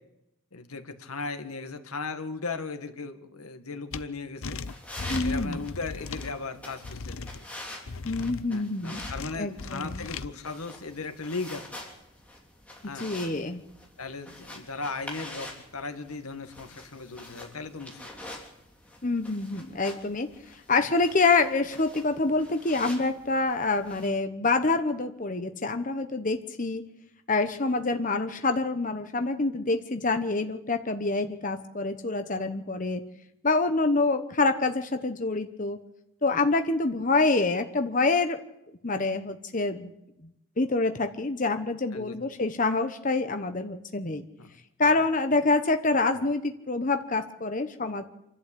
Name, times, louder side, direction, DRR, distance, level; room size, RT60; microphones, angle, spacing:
voice 1, 0.5-4.6 5.2-7.4 8.5-11.6 12.8-13.1 14.0-18.0 41.9-42.2 44.4-44.5 44.8-45.0, left 3 dB, 90° left, 8 dB, 1.9 m, -37 dB
sound 1, 3.9-4.0 4.4-6.3 6.8-7.4 7.9-8.4 9.0-10.3, left 4 dB, 70° left, 0.8 m, -36 dB
sound 2, 4.7-24.1, left 1 dB, 5° left, 3.4 m, -46 dB
voice 2, 5.1-5.6 8.0-9.1 9.4-10.1 12.9-13.6 19.0-20.3 20.7-26.8 27.3-33.0 33.4-35.8 36.2-38.4 38.8-39.9 40.6-44.2 44.8-48.0, left 3 dB, 35° left, 7 dB, 1.0 m, -26 dB
27.0 x 11.5 x 8.5 m, 0.87 s
head